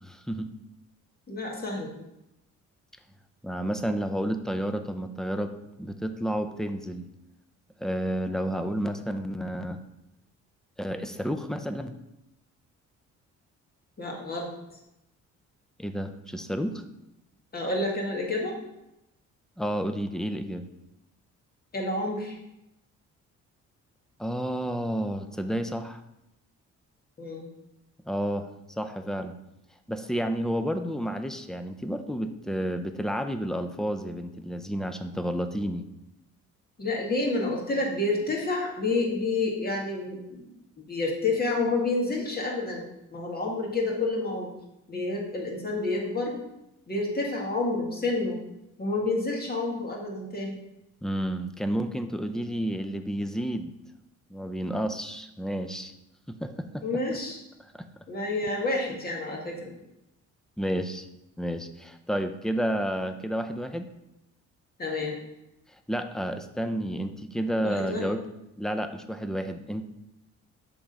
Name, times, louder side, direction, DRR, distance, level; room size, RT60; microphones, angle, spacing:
voice 1, 0.0-0.5 3.4-5.5 5.8-7.0 7.8-9.8 10.8-11.9 15.8-16.8 19.6-20.7 24.2-26.0 28.0-28.5 28.8-29.3 29.9-35.9 51.0-53.7 54.3-55.9 56.3-56.8 57.7-57.8 58.6-58.7 60.6-61.1 61.4-63.9 65.9-68.2 68.6-69.8, equal, ahead, 8 dB, 0.6 m, -31 dB
voice 2, 1.3-1.9 14.0-14.5 17.5-18.6 21.7-22.4 27.2-27.5 36.8-40.5 40.8-42.8 43.1-44.5 44.9-46.4 46.9-48.4 48.8-50.6 56.8-57.4 58.1-59.7 64.8-65.2 67.6-68.1, left 2 dB, 30° left, -1 dB, 1.9 m, -29 dB
7.1 x 3.8 x 5.2 m, 0.89 s
cardioid pair, 90°, 30 cm